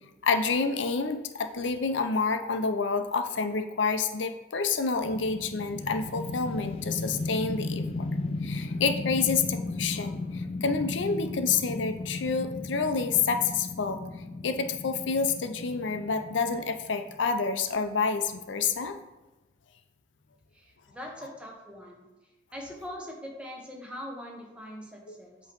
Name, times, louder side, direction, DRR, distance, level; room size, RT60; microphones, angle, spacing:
voice 1, 0.2-7.8 8.4-14.0 14.4-19.0, left 5 dB, 85° left, 8 dB, 0.6 m, -28 dB
sound 1, 5.0-17.3, left 2 dB, 30° left, 0.4 m, -35 dB
voice 2, 20.5-22.0 22.5-25.4, equal, 5° right, 0 dB, 1.0 m, -42 dB
8.1 x 3.1 x 5.2 m, 1.1 s
head